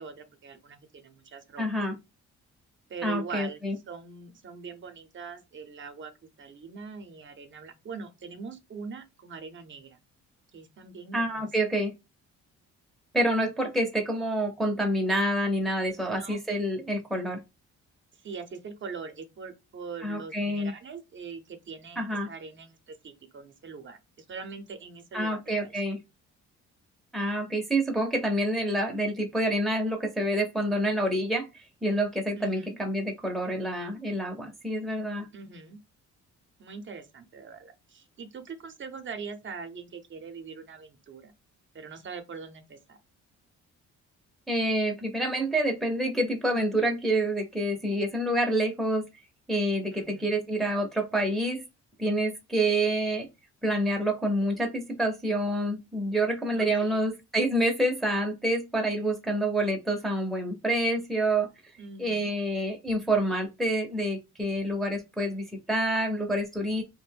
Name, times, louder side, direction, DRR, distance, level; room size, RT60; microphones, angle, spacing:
voice 1, 0.0-1.8 2.9-3.6 3.9-6.1 6.4-10.0 10.5-11.5 16.0-16.4 18.2-25.7 32.3-32.8 35.3-35.8 36.6-41.3 41.7-43.0 49.9-50.5 56.5-57.1 61.8-62.3, right 5 dB, 40° right, 0.7 m, -42 dB
voice 2, 1.6-2.0 3.0-3.8 11.1-11.9 13.1-17.4 20.0-20.7 22.0-22.3 25.1-26.0 27.1-35.3 44.5-49.0 49.5-51.6 52.0-53.3 53.6-61.5 62.0-66.8, right 1 dB, ahead, 0.6 m, -27 dB
2.5 x 2.2 x 3.3 m
cardioid pair, 90°, 30 cm